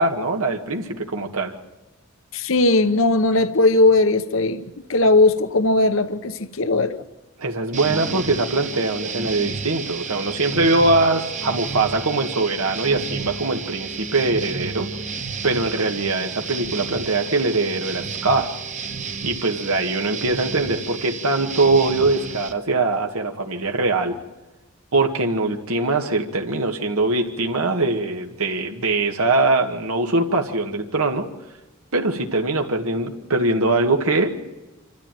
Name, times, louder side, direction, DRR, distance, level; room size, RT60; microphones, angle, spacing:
voice 1, 0.0-1.5 7.4-14.9 15.4-18.5 19.2-24.2 24.9-31.2 31.9-34.4, right 2 dB, 80° right, 3 dB, 1.9 m, -22 dB
voice 2, 2.3-7.0, left 2 dB, 60° left, 11 dB, 1.0 m, -18 dB
sound 1, 7.7-22.5, right 5 dB, 35° right, 1.3 m, -31 dB
27.0 x 13.5 x 9.2 m, 1.1 s
head